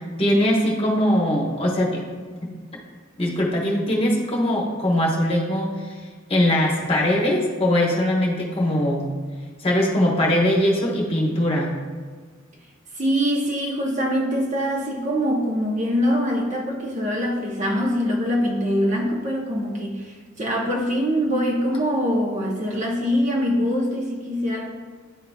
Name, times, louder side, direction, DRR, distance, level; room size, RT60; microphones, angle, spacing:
voice 1, 0.2-2.0 2.4-2.5 3.2-6.0 6.3-9.0 9.6-11.7, left 1 dB, 30° left, -3 dB, 1.2 m, -21 dB
voice 2, 13.0-24.7, equal, 40° right, 0 dB, 0.8 m, -23 dB
11.0 x 3.8 x 2.3 m, 1.5 s
head